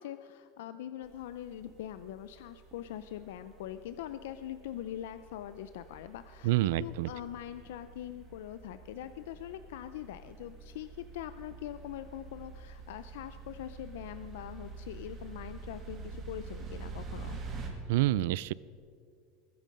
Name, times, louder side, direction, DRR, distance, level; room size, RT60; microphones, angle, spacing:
voice 1, 0.0-6.5 6.8-17.4, left 11 dB, 85° left, 11 dB, 0.5 m, -43 dB
sound 1, 1.0-17.7, right 4 dB, 25° right, 2.3 m, -47 dB
voice 2, 6.4-7.1 17.9-18.5, right 15 dB, 70° right, 20 dB, 0.3 m, -27 dB
21.5 x 9.2 x 5.4 m, 2.3 s
supercardioid pair, 155°, 0 cm